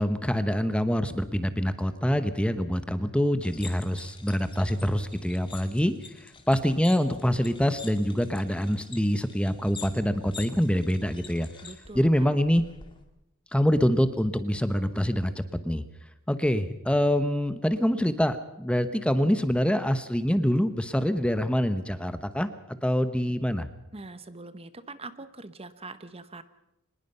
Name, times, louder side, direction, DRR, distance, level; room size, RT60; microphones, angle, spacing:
voice 1, 0.0-5.9 6.2-11.5 11.9-12.6 13.5-15.8 16.3-22.5 22.8-23.7, equal, 5° left, 11 dB, 1.0 m, -25 dB
sound 1, 3.4-13.0, left 5 dB, 25° left, 2.3 m, -47 dB
voice 2, 11.6-12.4 23.9-26.4, right 3 dB, 25° right, 12 dB, 1.0 m, -43 dB
24.5 x 20.5 x 5.6 m, 0.89 s
head